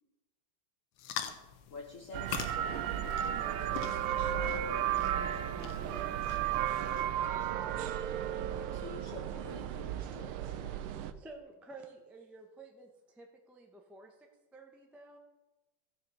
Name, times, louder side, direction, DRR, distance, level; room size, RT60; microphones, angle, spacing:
sound 1, 1.0-7.3, left 9 dB, 85° left, 1.7 m, -45 dB
voice 1, 1.7-2.3 8.7-10.8, left 4 dB, 55° left, 2 dB, 0.9 m, -48 dB
sound 2, 2.1-11.1, right 10 dB, 85° right, 1.5 m, -34 dB
voice 2, 2.4-6.4, right 4 dB, 70° right, 5 dB, 1.9 m, -49 dB
voice 3, 11.2-15.2, right 3 dB, ahead, 2 dB, 0.4 m, -52 dB
15.0 x 5.6 x 5.6 m, 1.1 s
omnidirectional pair, 2.4 m